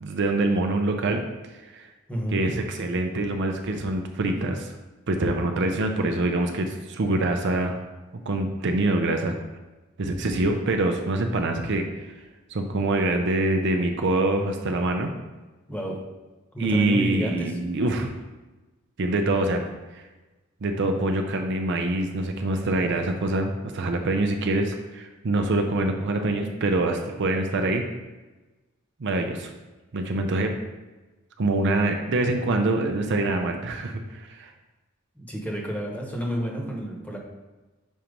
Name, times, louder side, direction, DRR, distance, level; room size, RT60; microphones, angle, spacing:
voice 1, 0.0-1.2 1.7-1.9 2.3-4.7 5.1-7.8 8.3-9.3 10.0-12.1 12.5-15.1 16.6-18.1 19.0-19.6 20.6-27.8 29.0-29.5 29.9-30.5 31.4-34.5, right 2 dB, 55° right, 4 dB, 0.5 m, -25 dB
voice 2, 2.1-2.4 15.7-16.0 16.5-17.5 35.2-37.2, equal, 5° left, -1 dB, 1.0 m, -30 dB
6.3 x 3.0 x 5.1 m, 1.2 s
head